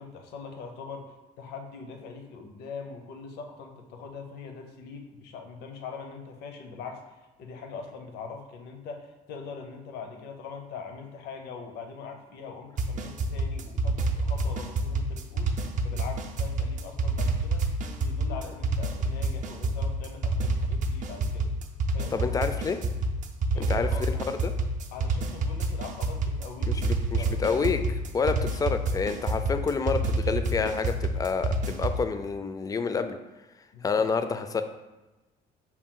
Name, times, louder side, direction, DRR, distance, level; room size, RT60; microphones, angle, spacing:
voice 1, 0.0-15.5 15.8-17.7 18.0-21.5 21.9-22.4 23.5-24.0 24.9-26.9 27.1-27.4 33.7-34.1, left 5 dB, 80° left, 4 dB, 0.7 m, -42 dB
sound 1, 12.8-32.0, right 2 dB, 50° right, 0.5 m, -28 dB
voice 2, 22.1-22.8 23.6-24.5 26.8-33.2 33.8-34.6, left 5 dB, 20° left, 9 dB, 0.3 m, -28 dB
5.8 x 2.3 x 3.7 m, 1.1 s
cardioid pair, 110°, 17 cm